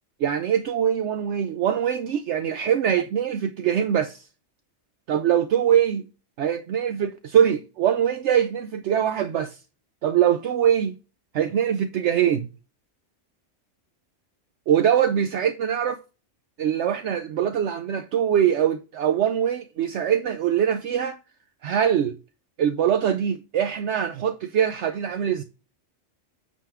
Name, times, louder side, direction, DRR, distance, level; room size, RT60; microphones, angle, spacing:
voice 1, 0.2-4.2 5.1-6.0 6.4-9.6 10.0-11.0 11.3-12.5 14.7-16.0 16.6-21.2 21.6-22.2 22.6-25.4, right 9 dB, 70° right, 0.9 m, -23 dB
8.9 x 5.0 x 3.5 m
omnidirectional pair, 1.3 m